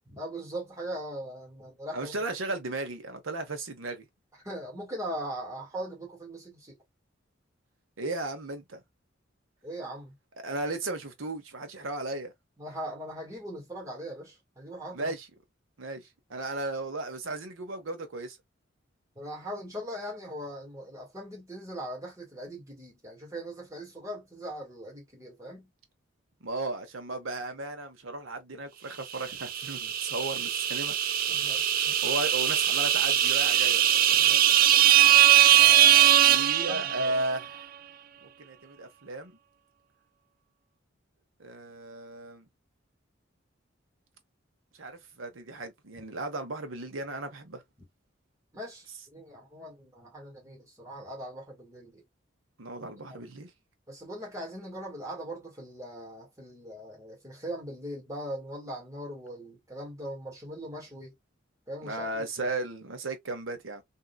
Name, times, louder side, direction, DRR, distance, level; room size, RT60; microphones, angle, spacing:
voice 1, 0.1-2.2 4.4-6.8 9.6-10.1 12.6-15.1 19.1-25.7 31.3-31.8 34.1-34.6 35.5-37.1 48.5-52.0 52.7-53.3 53.9-61.1 61.7-62.5, equal, 15° right, 1.7 m, -40 dB
voice 2, 1.9-4.0 8.0-8.8 10.4-12.3 14.9-15.3 15.8-18.4 26.4-31.0 31.7-33.8 36.3-37.7 38.2-39.4 41.4-42.5 44.8-47.6 52.6-53.5 61.8-63.8, right 2 dB, 90° right, 1.0 m, -35 dB
sound 1, 29.3-37.3, right 11 dB, 45° right, 0.4 m, -21 dB
3.7 x 2.8 x 2.2 m
head